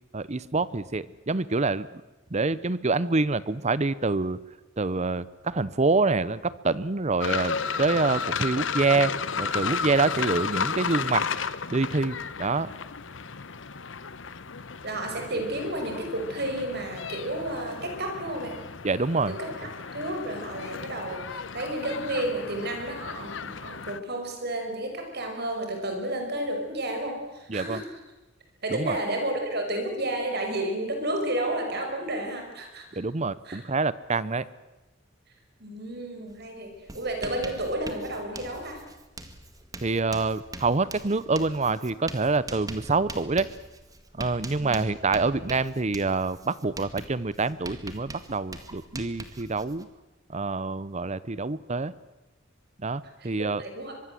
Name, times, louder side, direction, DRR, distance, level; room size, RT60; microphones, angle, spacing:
voice 1, 0.1-1.9 2.3-4.4 4.8-9.1 9.4-11.3 11.7-12.7 18.8-19.4 27.5-27.8 28.7-29.0 32.9-34.5 39.8-43.5 44.1-49.9 50.3-51.9 52.8-53.6, right 3 dB, 35° right, 18 dB, 0.8 m, -26 dB
sound 1, 7.2-24.0, left 5 dB, 70° left, 1.0 m, -33 dB
voice 2, 14.8-18.6 19.3-27.8 28.6-32.9 33.4-33.6 35.6-38.8 44.6-44.8 53.2-53.9, right 1 dB, 55° right, 4 dB, 5.6 m, -31 dB
Writing, 36.3-36.4 36.7-49.8, right 2 dB, 20° right, 1.9 m, -43 dB
24.5 x 23.0 x 7.8 m, 1.0 s
head